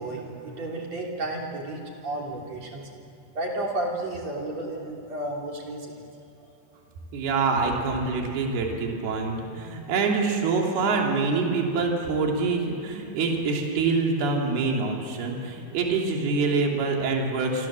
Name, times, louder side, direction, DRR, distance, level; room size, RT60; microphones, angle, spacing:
voice 1, 0.0-2.8 3.3-5.9, right 2 dB, 40° right, 0 dB, 3.8 m, -32 dB
voice 2, 7.1-17.7, right 4 dB, 65° right, 0 dB, 4.7 m, -25 dB
28.0 x 25.0 x 7.5 m, 2.9 s
omnidirectional pair, 5.1 m